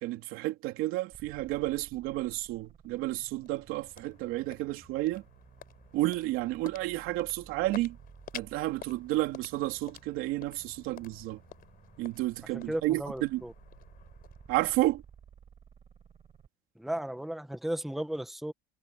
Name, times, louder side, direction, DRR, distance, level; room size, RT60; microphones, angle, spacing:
voice 1, 0.0-5.2 5.9-8.0 8.3-11.4 12.0-13.4 14.5-15.0, right 17 dB, 90° right, 2.9 m, -31 dB
sound 1, 1.1-16.5, right 7 dB, 30° right, 7.9 m, -56 dB
sound 2, 3.0-15.4, left 11 dB, 45° left, 4.3 m, -52 dB
voice 2, 12.7-13.5 16.8-18.5, right 1 dB, ahead, 1.1 m, -35 dB
cardioid pair, 170°, 21 cm